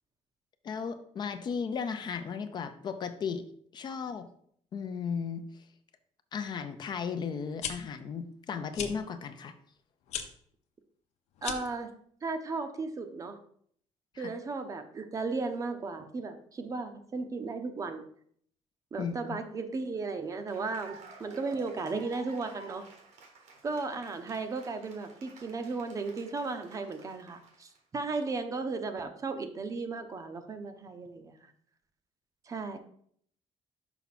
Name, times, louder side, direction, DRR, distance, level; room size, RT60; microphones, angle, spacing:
voice 1, 0.6-3.4 3.7-4.3 4.7-5.4 6.3-9.5 14.1-14.3 19.0-19.4, left 6 dB, 40° left, 9 dB, 0.5 m, -35 dB
sound 1, 7.4-7.7 8.7-8.9 10.1-10.3 11.4-11.8, left 8 dB, 75° left, 0.8 m, -35 dB
voice 2, 11.4-11.9 12.2-13.4 14.2-18.0 18.9-22.8 23.6-31.5 32.5-32.8, right 3 dB, 30° right, 8 dB, 0.6 m, -35 dB
Cheering / Applause, 20.2-27.8, right 3 dB, 90° right, 1.6 m, -53 dB
5.8 x 5.5 x 4.1 m, 0.63 s
cardioid pair, 165°, 12 cm